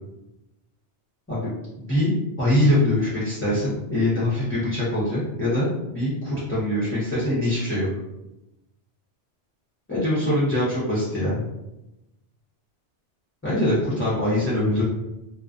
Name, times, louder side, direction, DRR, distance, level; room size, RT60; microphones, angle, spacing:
voice 1, 1.8-2.1 2.4-7.9 9.9-11.4 13.4-14.8, left 1 dB, 15° left, -11 dB, 0.6 m, -23 dB
2.3 x 2.2 x 2.4 m, 0.95 s
omnidirectional pair, 1.2 m